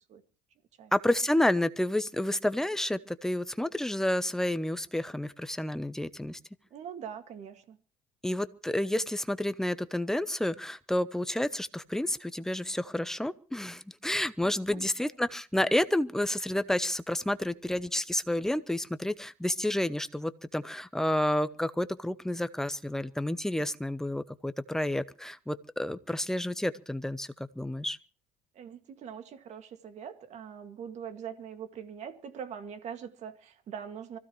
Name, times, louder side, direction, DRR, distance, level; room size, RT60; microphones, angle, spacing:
voice 1, 0.9-6.4 8.2-28.0, left 1 dB, 5° left, 0.7 m, -30 dB
voice 2, 6.7-7.8 14.7-15.1 28.5-34.2, right 8 dB, 50° right, 2.1 m, -42 dB
25.0 x 15.5 x 3.1 m
cardioid pair, 140°, 15 cm